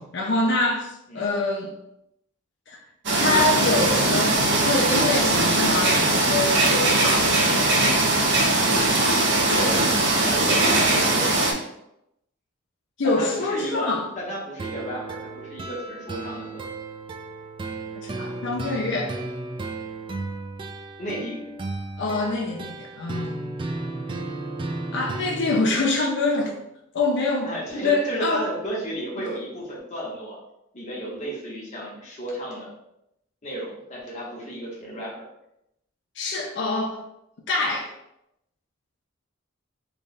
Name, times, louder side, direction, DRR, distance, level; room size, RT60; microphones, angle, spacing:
voice 1, 0.0-1.7 2.7-2.8 3.2-7.9 13.0-14.1 18.0-19.2 22.0-23.5 24.9-26.5 26.9-27.5 27.8-28.5 29.2-29.3 36.2-37.0 37.5-37.9, left 2 dB, 60° left, 0 dB, 0.6 m, -25 dB
sound 1, 3.1-11.5, right 2 dB, 60° right, 0.8 m, -20 dB
voice 2, 10.2-11.5 13.0-16.7 21.0-21.4 27.4-30.4 30.7-32.7 33.4-35.1, right 1 dB, 35° left, -5 dB, 1.2 m, -33 dB
sound 2, 14.6-25.6, right 2 dB, 25° right, 0.3 m, -34 dB
3.4 x 2.4 x 4.0 m, 0.82 s
head